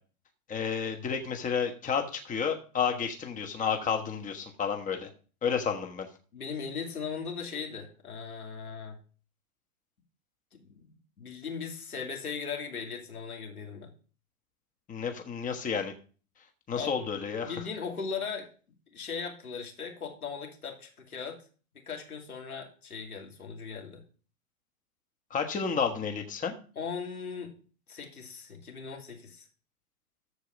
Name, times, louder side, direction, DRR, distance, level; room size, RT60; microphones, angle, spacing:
voice 1, 0.5-5.1 5.4-6.1 14.9-15.9 16.7-17.5 25.3-26.5, left 6 dB, 20° left, 5 dB, 1.3 m, -31 dB
voice 2, 6.3-9.0 10.5-13.9 16.7-17.0 17.4-18.5 18.9-21.4 21.9-24.0 26.8-27.5 27.9-29.5, left 5 dB, 85° left, 1 dB, 2.8 m, -38 dB
13.5 x 4.8 x 5.3 m, 0.39 s
hypercardioid pair, 105°, 43 cm